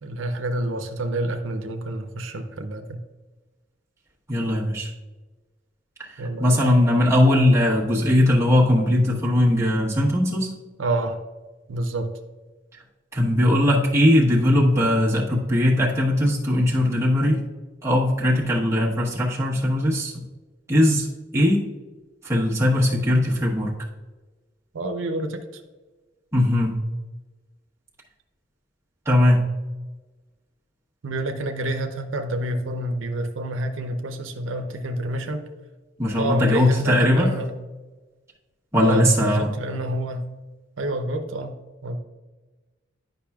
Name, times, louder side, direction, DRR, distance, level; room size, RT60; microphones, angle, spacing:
voice 1, 0.0-3.0 6.2-6.7 10.8-11.2 11.7-12.1 24.7-25.6 31.0-35.4 36.2-37.5 38.8-40.3 40.8-41.6 41.8-42.0, right 1 dB, 90° right, 6 dB, 0.7 m, -28 dB
voice 2, 4.3-4.9 6.4-10.5 13.1-17.4 17.8-20.1 20.7-21.1 21.3-21.6 22.2-23.7 26.3-26.8 29.1-29.4 36.0-37.3 38.7-39.5, left 1 dB, 15° right, -5 dB, 1.1 m, -19 dB
10.0 x 5.4 x 2.3 m, 1.2 s
head